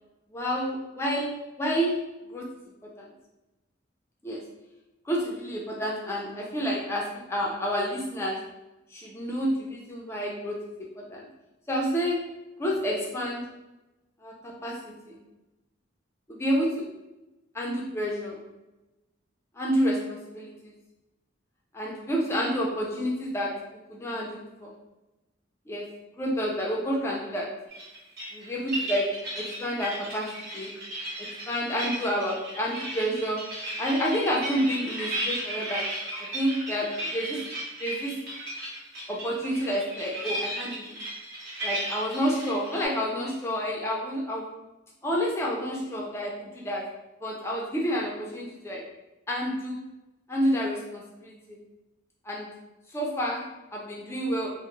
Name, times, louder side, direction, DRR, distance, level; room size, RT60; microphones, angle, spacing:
voice 1, 0.3-1.3 1.6-2.0 2.3-2.5 2.8-3.1 4.2-4.4 5.1-7.0 7.3-8.4 8.9-10.6 10.9-11.3 11.7-12.2 12.6-13.4 14.2-15.2 16.3-16.8 17.5-18.4 19.6-20.7 21.7-23.5 23.9-24.7 25.7-25.9 26.2-27.5 28.3-29.1 29.4-30.3 30.5-30.7 31.2-33.4 33.8-35.9 36.3-37.4 37.8-38.2 39.1-41.0 41.6-44.4 45.0-46.8 47.2-48.8 49.3-49.8 50.3-51.6 52.3-52.5 52.9-53.4 53.7-54.5, equal, 15° left, -3 dB, 0.3 m, -29 dB
sound 1, 27.7-42.9, right 1 dB, 50° right, 0.9 m, -35 dB
2.2 x 2.0 x 3.0 m, 1.0 s
head